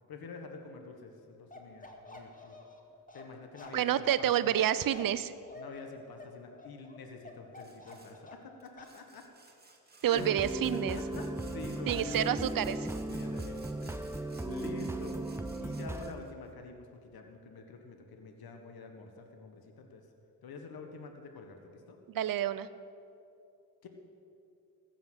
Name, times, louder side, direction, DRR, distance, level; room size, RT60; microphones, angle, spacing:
voice 1, 0.1-2.6 3.1-4.5 5.5-9.2 10.0-12.5 13.1-20.1 20.4-22.0 23.8-23.9, left 4 dB, 65° left, 4 dB, 1.5 m, -47 dB
Bark, 1.5-8.5 8.8-9.0, left 2 dB, 20° left, 1.9 m, -49 dB
voice 2, 3.7-5.3 10.0-11.0 11.9-12.9 22.1-22.7, right 11 dB, 60° right, 15 dB, 0.7 m, -29 dB
Sawing, 7.6-8.2 8.6-16.3, right 3 dB, 25° right, 1.8 m, -58 dB
sound 1, 10.2-16.1, right 2 dB, 5° right, 0.6 m, -37 dB
14.5 x 7.2 x 8.0 m, 2.6 s
cardioid pair, 65°, 39 cm